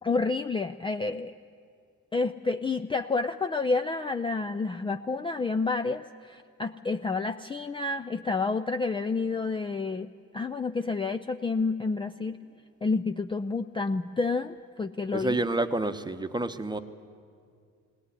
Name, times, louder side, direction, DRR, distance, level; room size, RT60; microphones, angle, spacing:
voice 1, 0.0-1.3 2.1-10.1 10.3-12.4 12.8-15.4, left 3 dB, 15° left, 7 dB, 0.4 m, -29 dB
voice 2, 15.1-16.8, right 2 dB, 15° right, 10 dB, 0.9 m, -28 dB
18.5 x 18.5 x 9.7 m, 2.2 s
cardioid pair, 90°, 30 cm